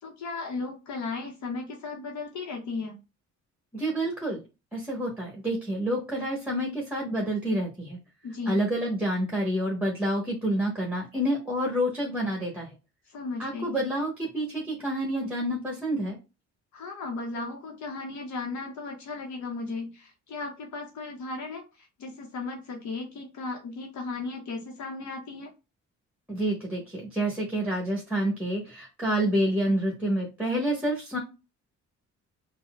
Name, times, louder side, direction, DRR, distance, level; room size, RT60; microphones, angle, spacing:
voice 1, 0.0-3.0 8.2-8.6 13.1-13.8 16.7-25.5, left 3 dB, 70° left, 2 dB, 0.8 m, -36 dB
voice 2, 3.7-4.4 4.7-8.0 8.5-12.7 13.4-16.2 26.3-31.2, right 1 dB, 5° right, -2 dB, 1.1 m, -28 dB
4.1 x 2.1 x 2.3 m, 0.28 s
cardioid pair, 90°, 30 cm